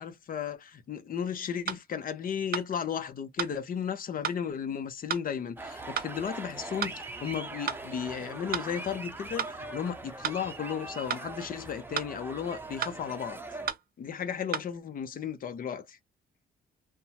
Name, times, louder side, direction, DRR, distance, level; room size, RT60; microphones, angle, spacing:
voice 1, 0.0-13.4 14.0-16.0, left 8 dB, 45° left, 0.7 m, -34 dB
sound 1, 1.7-1.8 2.5-2.7 3.4-3.6 4.2-4.4 5.1-5.3 6.0-6.1 6.8-7.0 7.7-7.8 8.5-8.7 9.4-9.5 10.2-10.4 11.1-11.3 12.0-12.1 12.8-13.0 13.7-13.8 14.5-14.7, right 9 dB, 50° right, 0.5 m, -32 dB
sound 2, 5.6-13.7, right 2 dB, 10° right, 0.6 m, -41 dB
3.5 x 2.1 x 2.8 m
cardioid pair, 105°, 19 cm